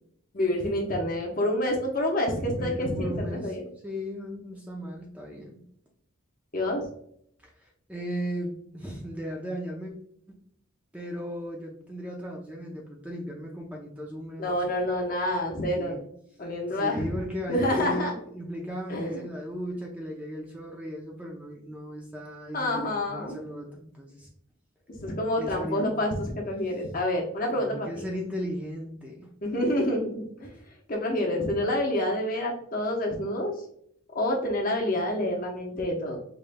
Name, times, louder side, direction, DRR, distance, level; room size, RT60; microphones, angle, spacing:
voice 1, 0.3-3.7 6.5-6.8 14.4-16.0 16.4-17.1 17.5-18.1 18.9-19.2 22.5-23.4 25.0-27.9 29.4-30.6 30.9-33.5 34.1-36.2, left 1 dB, 40° left, 0 dB, 0.9 m, -28 dB
voice 2, 2.5-3.6 3.8-5.6 7.4-9.9 10.9-14.8 15.8-16.0 16.7-24.3 25.4-26.0 27.5-29.3, equal, 5° right, -1 dB, 0.5 m, -37 dB
4.9 x 3.1 x 2.2 m, 0.68 s
head